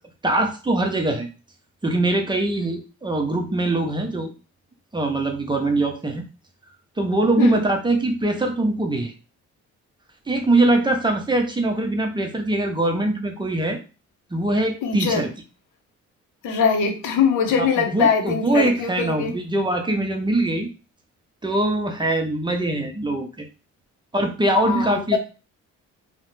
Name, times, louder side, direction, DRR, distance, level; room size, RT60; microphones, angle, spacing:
voice 1, 0.2-1.3 1.8-4.3 4.9-6.3 7.0-9.1 10.3-13.8 14.3-15.3 17.6-20.7 21.4-23.5 24.1-25.2, right 2 dB, 15° right, 3 dB, 0.5 m, -22 dB
voice 2, 14.8-15.2 16.4-19.3 24.7-25.0, left 6 dB, 85° left, 5 dB, 0.6 m, -22 dB
2.3 x 2.1 x 3.0 m, 0.33 s
cardioid pair, 90°, 30 cm